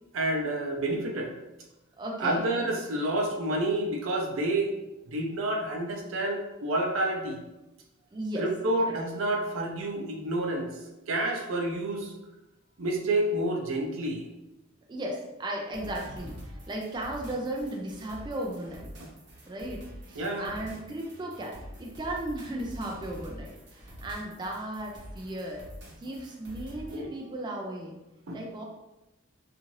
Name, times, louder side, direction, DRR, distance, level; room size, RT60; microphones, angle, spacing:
voice 1, 0.1-1.3 2.2-4.7 5.0-7.4 8.4-10.7 11.1-12.1 12.8-14.3 19.0-19.1 20.2-20.5 26.9-27.1 28.3-28.4, right 1 dB, 85° right, 1 dB, 0.5 m, -29 dB
voice 2, 2.0-2.5 8.1-8.5 8.8-8.9 14.9-18.9 19.5-25.6 26.0-28.0 28.3-28.6, right 1 dB, 20° right, -1 dB, 0.3 m, -36 dB
sound 1, 15.7-27.0, equal, 60° right, 0.9 m, -46 dB
2.6 x 2.5 x 3.0 m, 0.99 s
head